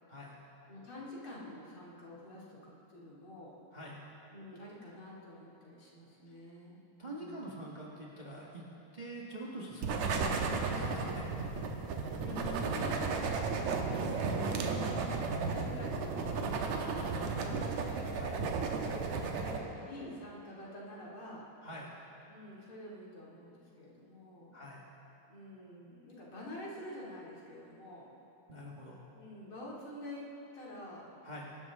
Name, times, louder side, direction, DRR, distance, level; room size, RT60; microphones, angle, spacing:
voice 1, 0.1-0.4 3.7-4.0 7.0-8.7 8.9-11.3 14.5-15.1 18.2-18.4 21.6-21.9 24.5-24.9 28.5-29.0 31.2-31.5, right 1 dB, 85° right, -4 dB, 0.4 m, -45 dB
voice 2, 0.7-3.5 4.3-7.6 12.2-14.6 15.2-16.3 16.8-17.8 18.6-21.5 22.3-24.6 25.3-28.1 29.1-30.3 30.5-31.1, left 1 dB, 40° left, -5 dB, 3.2 m, -47 dB
sound 1, 9.8-19.6, right 4 dB, 70° right, 2.3 m, -34 dB
25.0 x 12.0 x 3.6 m, 3.0 s
omnidirectional pair, 3.6 m